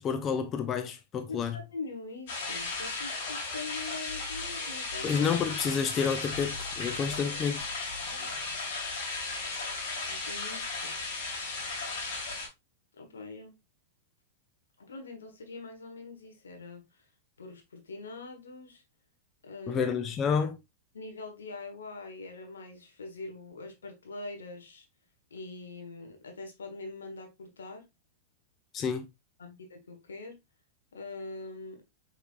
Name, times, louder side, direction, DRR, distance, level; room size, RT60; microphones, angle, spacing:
voice 1, 0.0-1.6 5.0-7.6 19.7-20.6 28.7-29.1, left 6 dB, 30° left, 0.5 m, -29 dB
voice 2, 1.3-5.2 8.0-8.3 10.0-10.9 12.9-13.6 14.8-17.1 17.4-18.8 19.4-19.9 20.9-24.9 25.3-27.8 29.4-30.4 30.9-31.8, left 3 dB, 85° left, 1.3 m, -43 dB
sound 1, 2.3-12.5, left 3 dB, 60° left, 1.9 m, -35 dB
5.0 x 3.7 x 2.4 m
hypercardioid pair, 105°, 0 cm